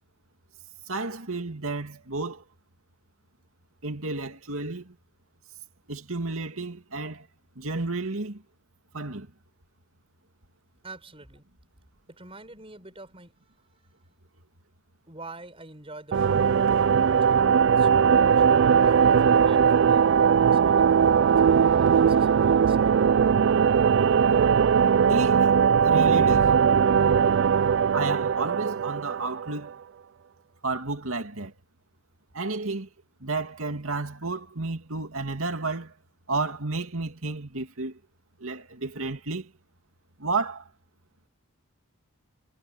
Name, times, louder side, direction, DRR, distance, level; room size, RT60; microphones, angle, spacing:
voice 1, 0.9-2.4 3.8-5.0 5.9-7.3 7.6-8.4 8.9-9.3 25.1-25.5 25.8-26.6 27.9-29.7 30.6-31.5 32.3-32.9 33.2-35.9 36.3-38.0 38.4-39.5 40.2-40.7, right 3 dB, 70° right, 2.6 m, -31 dB
voice 2, 10.8-11.4 12.1-13.9 15.1-16.3 16.9-18.4 18.7-23.1, right 2 dB, 25° right, 6.7 m, -46 dB
sound 1, 16.1-29.7, right 7 dB, 55° right, 0.3 m, -20 dB
head